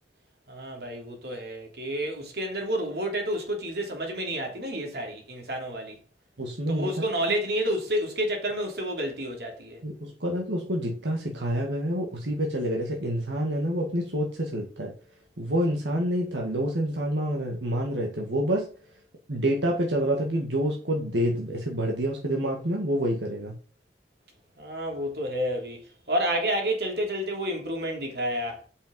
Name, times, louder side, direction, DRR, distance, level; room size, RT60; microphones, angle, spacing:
voice 1, 0.5-6.0 6.7-9.8 24.6-25.8 26.1-28.6, right 1 dB, 60° right, 3.3 m, -30 dB
voice 2, 6.4-6.9 9.8-14.9 15.4-18.7 19.3-23.6, equal, 85° right, 1.9 m, -27 dB
8.1 x 6.9 x 5.3 m
head